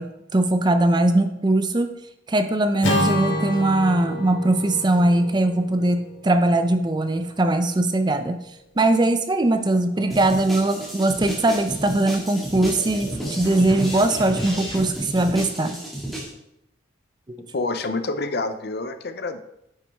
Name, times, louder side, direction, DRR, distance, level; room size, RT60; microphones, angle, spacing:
voice 1, 0.0-1.9 2.3-8.4 8.8-15.8 17.3-17.4, right 2 dB, 20° right, 9 dB, 0.4 m, -21 dB
Acoustic guitar / Strum, 2.8-7.2, left 1 dB, 70° left, 2.5 m, -29 dB
sound 1, 9.5-14.9, equal, 25° left, 3.0 m, -40 dB
sound 2, 10.1-16.3, right 1 dB, ahead, 1.9 m, -32 dB
voice 2, 17.5-19.4, left 3 dB, 55° left, 9 dB, 0.6 m, -27 dB
9.2 x 6.1 x 3.5 m, 0.82 s
head